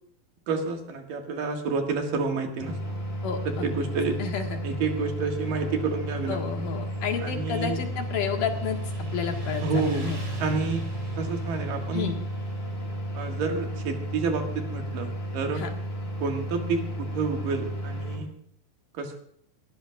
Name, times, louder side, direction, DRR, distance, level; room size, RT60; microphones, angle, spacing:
voice 1, 0.5-3.0 3.5-4.2 4.6-6.7 7.2-7.8 9.6-10.1 10.4-10.8 11.1-12.2 13.2-15.6 16.2-18.4 18.9-19.2, right 4 dB, 70° right, 3 dB, 3.4 m, -29 dB
sound 1, 2.6-18.2, equal, 50° left, 5.6 m, -33 dB
voice 2, 3.2-3.7 4.2-4.6 6.3-8.8 9.1-10.2 11.9-12.2 15.5-15.7, left 7 dB, 65° left, 2 dB, 3.2 m, -31 dB
Motorcycle, 6.6-17.7, right 1 dB, 30° right, 3.6 m, -43 dB
30.0 x 13.5 x 2.5 m, 0.66 s
omnidirectional pair, 4.1 m